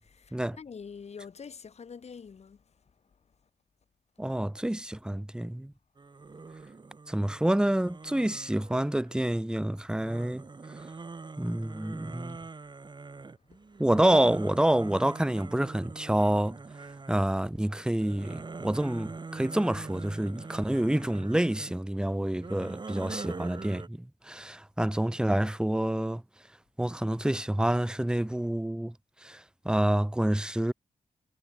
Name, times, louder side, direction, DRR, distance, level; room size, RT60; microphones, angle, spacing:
voice 1, 0.0-2.6, left 6 dB, 55° left, 4.6 m, -45 dB
voice 2, 4.2-5.7 7.1-10.4 11.4-12.4 13.8-16.6 17.1-26.2 26.8-28.9 29.2-30.7, right 1 dB, 5° right, 1.3 m, -28 dB
sound 1, 6.0-9.3 10.0-17.4 17.8-21.7 22.3-23.9, right 4 dB, 35° right, 4.5 m, -43 dB
cardioid pair, 90°, 13 cm